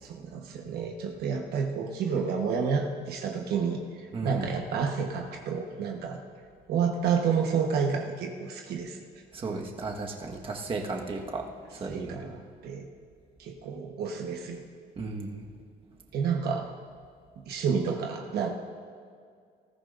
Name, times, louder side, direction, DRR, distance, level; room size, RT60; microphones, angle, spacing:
voice 1, 0.0-3.8 4.2-6.2 6.7-9.0 11.9-12.8 13.4-14.6 16.1-16.7 17.5-18.5, right 6 dB, 70° right, 2 dB, 1.2 m, -30 dB
voice 2, 4.1-4.5 9.3-11.4 11.7-12.3 15.0-15.5, right 3 dB, 30° right, 1 dB, 1.4 m, -35 dB
20.0 x 14.0 x 2.6 m, 2.2 s
cardioid pair, 110°, 17 cm